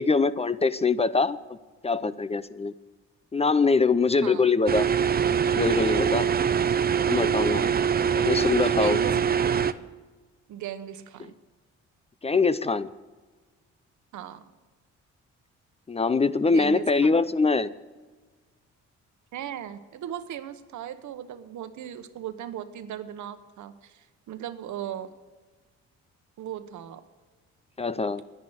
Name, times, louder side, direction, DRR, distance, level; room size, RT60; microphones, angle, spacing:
voice 1, 0.0-1.6 1.8-2.7 3.3-4.9 5.5-6.3 7.0-7.7 8.1-9.0 12.2-12.9 15.9-17.7 27.8-28.2, left 4 dB, 20° left, 16 dB, 0.5 m, -23 dB
sound 1, 4.7-9.7, right 7 dB, 30° right, 0.6 m, -23 dB
voice 2, 8.7-9.5 10.5-11.3 14.1-14.4 16.4-17.2 19.3-25.1 26.4-27.0, right 10 dB, 70° right, 11 dB, 1.1 m, -38 dB
10.5 x 10.0 x 9.1 m, 1.3 s
cardioid pair, 90°, 30 cm